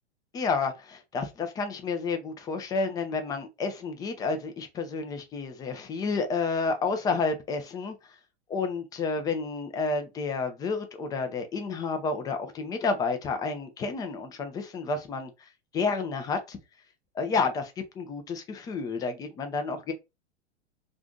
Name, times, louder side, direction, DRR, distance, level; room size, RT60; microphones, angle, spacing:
voice 1, 0.3-8.0 8.5-15.5 15.7-16.6 17.1-19.9, left 4 dB, 10° left, 0.3 m, -30 dB
2.5 x 2.4 x 3.5 m
hypercardioid pair, 110°, 35 cm